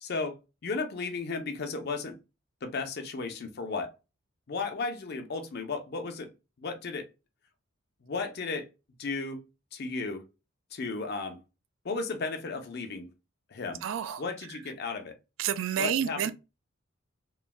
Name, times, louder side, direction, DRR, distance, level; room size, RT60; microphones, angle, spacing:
voice 1, 0.0-0.4 0.6-2.2 2.6-3.9 4.5-6.3 6.6-7.1 8.0-8.7 9.0-9.4 9.7-10.2 10.7-11.4 11.8-13.1 13.5-13.8 14.2-15.1 15.8-16.3, left 4 dB, 50° left, 0.5 m, -34 dB
voice 2, 13.8-14.2 15.4-16.3, right 9 dB, 70° right, 0.3 m, -29 dB
3.1 x 2.2 x 2.3 m
head